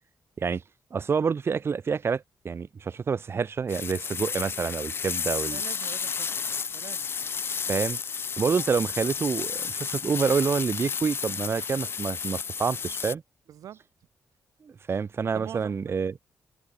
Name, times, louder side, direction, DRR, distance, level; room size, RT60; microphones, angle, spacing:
voice 1, 0.9-5.6 7.7-8.0 8.4-13.2 14.6-16.1, right 5 dB, 45° right, 1.0 m, -28 dB
sound 1, 3.7-13.1, left 6 dB, 45° left, 0.4 m, -32 dB
voice 2, 5.5-7.1 13.5-13.8 15.3-16.0, right 10 dB, 85° right, 2.0 m, -43 dB
open air
cardioid pair, 85°, 6 cm